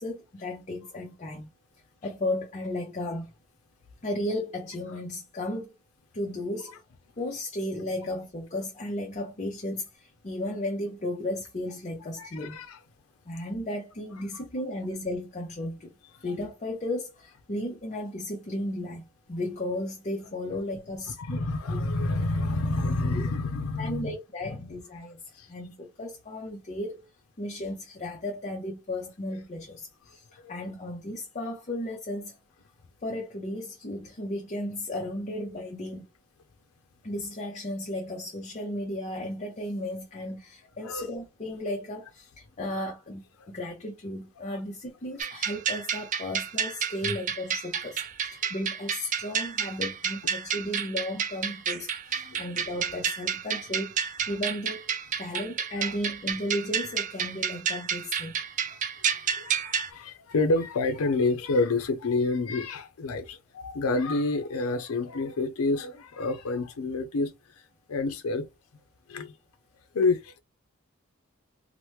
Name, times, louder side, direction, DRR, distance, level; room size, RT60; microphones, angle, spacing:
voice 1, 0.0-1.5 2.0-3.3 4.0-5.7 6.1-6.8 7.2-12.6 13.3-15.9 16.2-19.0 19.3-21.4 23.2-23.3 23.8-25.2 25.5-27.1 27.4-30.2 30.5-32.3 33.0-36.0 37.0-48.0 48.3-54.9 55.2-58.3, left 1 dB, 30° left, 0.6 m, -34 dB
voice 2, 12.2-12.8 14.3-14.4 16.3-16.4 21.1-24.2 24.4-24.7 25.3-25.5 30.4-30.5 40.8-41.1 43.4-43.5 44.5-44.6 47.0-47.2 52.1-52.4 55.3-55.4 55.8-55.9 58.7-58.8 59.1-67.6 67.9-68.4 69.1-69.3 69.9-70.3, left 3 dB, 85° left, 0.5 m, -29 dB
sound 1, 45.2-59.9, right 7 dB, 35° right, 0.4 m, -30 dB
2.9 x 2.1 x 3.0 m
head